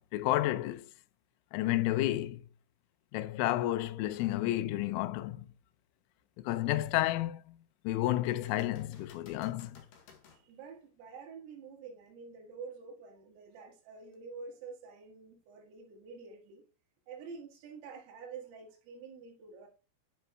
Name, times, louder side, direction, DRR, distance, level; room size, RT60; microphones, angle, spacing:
voice 1, 0.1-0.9 1.5-2.4 3.1-5.4 6.4-7.4 7.8-9.7, left 15 dB, 85° left, 3.2 m, -31 dB
sound 1, 4.1-4.4 5.0-5.1 8.2-10.5 14.1-14.2, left 5 dB, 60° left, 2.3 m, -58 dB
voice 2, 10.3-16.6 17.1-19.7, right 5 dB, 80° right, 4.5 m, -48 dB
10.5 x 5.4 x 2.3 m
omnidirectional pair, 6.0 m